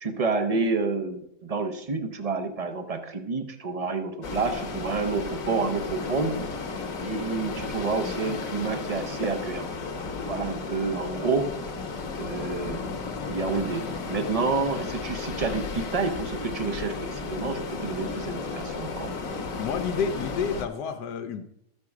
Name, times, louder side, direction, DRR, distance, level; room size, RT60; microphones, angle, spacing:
voice 1, 0.0-6.4 7.0-9.7 10.2-11.5 12.2-12.8 13.3-19.1, right 4 dB, 40° right, 7 dB, 0.5 m, -29 dB
sound 1, 4.2-20.6, left 4 dB, 60° left, 1.3 m, -34 dB
voice 2, 19.5-21.4, left 6 dB, 85° left, 9 dB, 1.3 m, -29 dB
13.5 x 4.7 x 4.8 m, 0.75 s
omnidirectional pair, 1.7 m